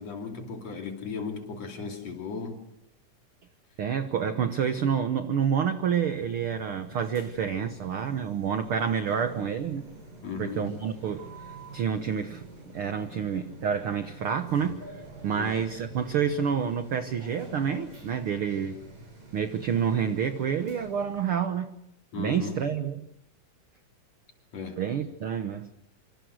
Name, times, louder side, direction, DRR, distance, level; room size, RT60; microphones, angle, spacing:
voice 1, 0.0-2.6 10.2-10.7 15.3-15.6 22.1-22.6 24.5-24.8, left 5 dB, 50° left, 4 dB, 3.8 m, -36 dB
voice 2, 3.8-9.8 10.4-11.3 11.7-14.8 15.2-18.8 19.3-21.7 22.2-23.1 24.8-25.7, right 7 dB, 65° right, 9 dB, 1.4 m, -28 dB
sound 1, 5.7-21.3, right 1 dB, 90° right, 9.6 m, -47 dB
26.5 x 25.5 x 6.4 m, 0.78 s
omnidirectional pair, 3.8 m